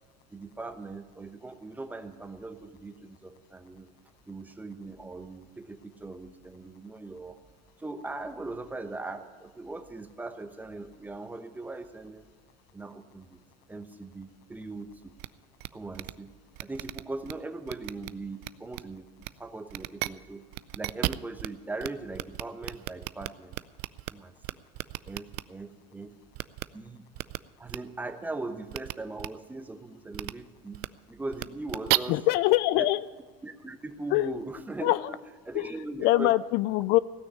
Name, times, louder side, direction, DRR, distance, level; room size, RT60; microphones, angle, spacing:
voice 1, 0.3-3.9 4.3-7.4 7.8-12.2 12.7-13.4 13.7-15.2 15.7-16.3 16.6-19.1 19.4-20.5 20.7-23.6 24.1-24.3 25.1-26.1 26.7-27.0 27.6-32.2 32.8-32.9 33.4-35.2 35.5-36.4, right 2 dB, 10° right, 8 dB, 0.9 m, -40 dB
sound 1, 15.2-15.3 15.6-15.7 15.9-16.1 16.6-17.3 17.7-18.1 18.4-18.8 19.2-19.3 19.7-20.1 20.5-21.5 21.8-21.9 22.1-24.1 24.4-25.4 26.4-26.6 27.2-27.4 27.7-27.8 28.7-28.9 29.2-29.3 30.1-30.3 30.7-30.9 31.3-32.0, right 22 dB, 65° right, 0.4 m, -32 dB
voice 2, 32.1-33.0 34.1-34.4 34.8-35.0 35.5-35.7 36.0-37.0, left 17 dB, 65° left, 17 dB, 0.4 m, -23 dB
16.5 x 6.3 x 9.6 m, 1.4 s
supercardioid pair, 120°, 18 cm